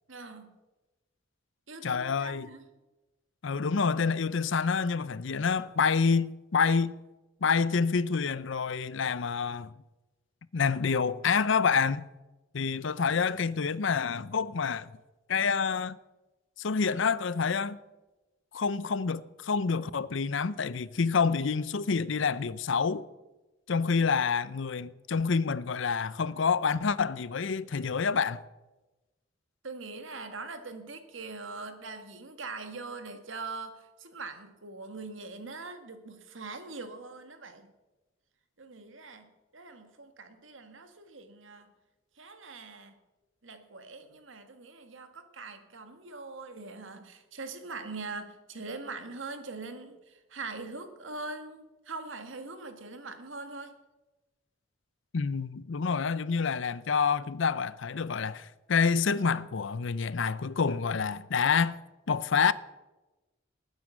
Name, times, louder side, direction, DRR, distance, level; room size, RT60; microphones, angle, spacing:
voice 1, 0.1-0.6 1.7-2.6 29.6-37.7 38.6-41.7 42.2-43.0 43.4-53.8, right 3 dB, 75° right, 1.8 m, -42 dB
voice 2, 1.8-2.5 3.4-6.9 7.4-9.7 10.5-12.0 12.5-14.9 15.3-16.0 16.6-17.8 18.5-23.0 23.7-28.4 55.1-61.8 62.1-62.5, left 5 dB, 65° left, 0.6 m, -27 dB
19.5 x 9.5 x 6.4 m
head